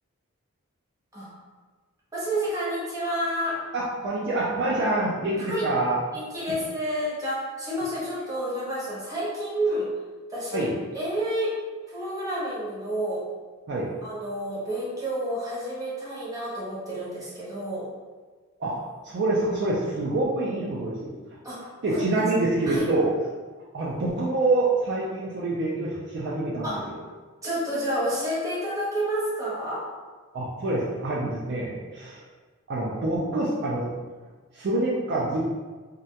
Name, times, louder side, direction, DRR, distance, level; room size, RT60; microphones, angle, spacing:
voice 1, 2.1-3.6 5.4-5.7 6.1-9.9 10.3-10.7 10.9-11.6 11.9-13.2 14.0-17.9 21.4-21.6 21.9-22.3 22.7-22.8 26.6-26.8 27.4-29.8, equal, 15° right, -8 dB, 0.6 m, -29 dB
voice 2, 3.7-6.0 6.5-6.6 10.5-10.7 13.7-13.9 18.6-18.8 19.0-21.1 21.8-23.1 23.7-26.9 30.3-32.2 32.7-33.9 34.5-35.5, right 2 dB, 50° right, -6 dB, 0.3 m, -26 dB
2.3 x 2.1 x 2.7 m, 1.4 s
head